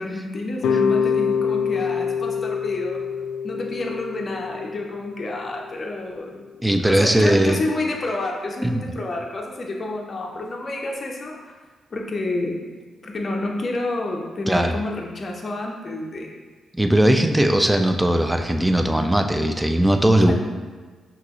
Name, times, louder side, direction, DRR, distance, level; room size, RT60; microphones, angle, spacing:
voice 1, 0.0-3.0 3.4-11.6 11.9-12.6 13.0-16.3 20.2-20.3, left 2 dB, 40° left, 0 dB, 0.8 m, -29 dB
sound 1, 0.6-5.7, left 6 dB, 90° left, 0.3 m, -25 dB
voice 2, 6.6-7.6 8.6-8.8 14.5-14.8 16.7-20.3, right 1 dB, 10° right, 5 dB, 0.4 m, -19 dB
5.8 x 2.9 x 3.1 m, 1.4 s
cardioid pair, 85°, 0 cm